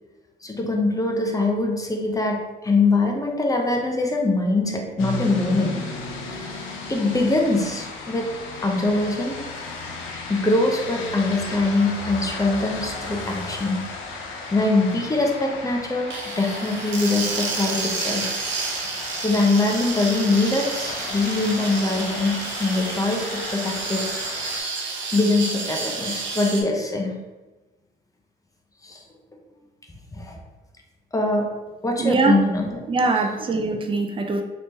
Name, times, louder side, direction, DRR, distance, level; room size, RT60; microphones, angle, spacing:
voice 1, 0.4-5.8 6.9-8.3 8.6-9.4 10.3-13.8 14.5-18.4 19.2-24.1 25.1-27.2 28.8-29.0 30.1-30.4 31.1-31.5 31.8-32.7, left 2 dB, 15° left, 1 dB, 0.6 m, -23 dB
sound 1, 5.0-24.6, left 3 dB, 85° left, 0.6 m, -35 dB
sound 2, 16.1-26.6, right 4 dB, 75° right, 0.7 m, -30 dB
voice 2, 32.0-32.4 32.9-34.4, right 3 dB, 25° right, 4 dB, 0.4 m, -22 dB
3.2 x 3.0 x 2.8 m, 1.1 s
cardioid pair, 90°, 20 cm